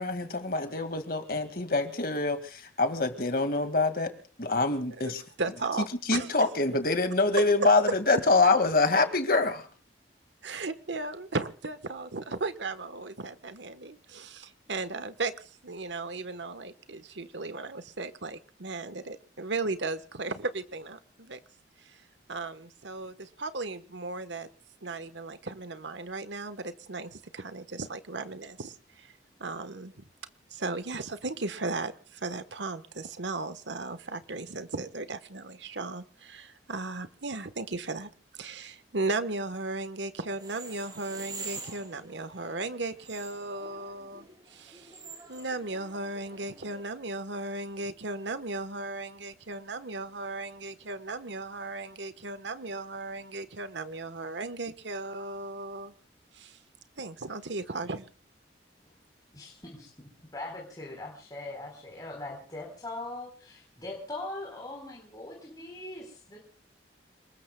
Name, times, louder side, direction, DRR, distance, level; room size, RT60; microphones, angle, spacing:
voice 1, 0.0-4.1 4.4-5.2 6.1-9.7, left 3 dB, 50° left, 8 dB, 2.1 m, -25 dB
voice 2, 5.0-6.3 10.4-21.4 21.8-22.0 22.3-24.5 24.8-29.1 29.4-30.0 30.5-45.0 45.3-55.9 56.3-56.6 57.0-58.1, right 3 dB, 80° right, 11 dB, 1.3 m, -36 dB
sound 1, 40.3-46.8, right 4 dB, 20° right, 5.4 m, -46 dB
voice 3, 59.3-66.4, left 2 dB, 20° left, -1 dB, 4.2 m, -41 dB
29.0 x 20.0 x 2.3 m, 0.39 s
head